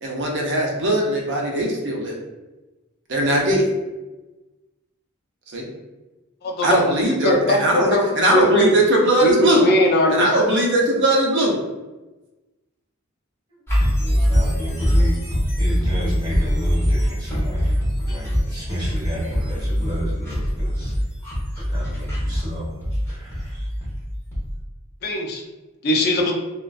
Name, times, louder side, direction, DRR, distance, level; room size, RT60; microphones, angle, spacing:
voice 1, 0.0-2.1 3.1-3.7 5.5-5.6 6.6-9.6 10.1-11.6, right 1 dB, 55° right, 0 dB, 0.6 m, -19 dB
voice 2, 6.4-6.8 7.2-8.0 8.3-8.7 9.2-10.3 25.0-25.4 25.8-26.3, equal, 45° left, 0 dB, 0.4 m, -19 dB
sound 1, 13.7-24.6, equal, 10° left, 0.9 m, -23 dB
voice 3, 14.0-15.1 15.6-21.0 21.6-23.7, equal, 20° right, -9 dB, 1.1 m, -31 dB
2.4 x 2.1 x 2.3 m, 1.1 s
head